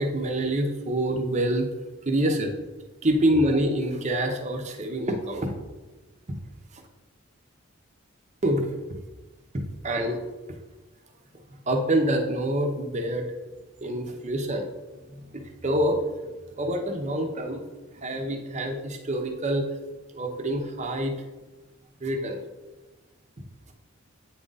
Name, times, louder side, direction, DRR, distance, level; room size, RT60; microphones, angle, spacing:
voice 1, 0.0-1.7 2.0-2.5 3.0-5.5 6.3-6.4 6.7-6.8 8.4-8.7 9.5-10.2 11.7-13.3 13.8-14.7 15.1-16.0 16.6-17.6 17.9-19.7 20.1-21.1 22.0-22.4, right 1 dB, 35° right, 3 dB, 0.8 m, -26 dB
8.6 x 3.7 x 4.0 m, 1.2 s
head